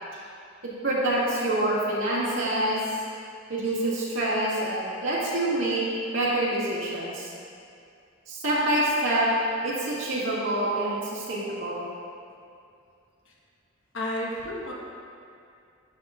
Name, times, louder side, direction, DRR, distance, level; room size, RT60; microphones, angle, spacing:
voice 1, 0.8-2.8 3.5-5.8 6.1-7.3 8.3-9.3 9.6-11.8, right 1 dB, 70° right, -7 dB, 1.9 m, -26 dB
voice 2, 13.9-14.7, left 1 dB, 75° left, -3 dB, 1.2 m, -31 dB
11.0 x 6.2 x 2.4 m, 2.4 s
head